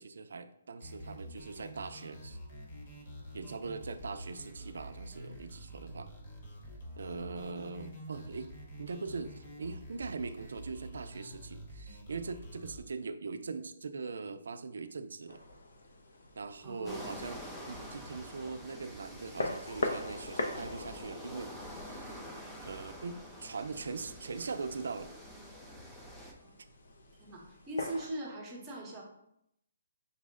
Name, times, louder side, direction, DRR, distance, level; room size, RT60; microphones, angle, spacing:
voice 1, 0.0-2.4 3.3-6.1 7.0-8.5 8.8-15.4 16.4-17.4 17.7-22.2 22.6-25.1, right 4 dB, 80° right, 10 dB, 0.4 m, -41 dB
sound 1, 0.8-12.8, equal, 35° left, 0.9 m, -47 dB
voice 2, 7.1-7.6 16.6-17.1 26.4-26.6 27.2-29.0, right 1 dB, 10° right, -3 dB, 0.8 m, -41 dB
sound 2, 15.3-28.1, left 2 dB, 85° left, 0.6 m, -43 dB
sound 3, 16.8-26.3, equal, 5° left, 0.4 m, -47 dB
5.3 x 2.1 x 3.6 m, 0.78 s
hypercardioid pair, 175°, 0 cm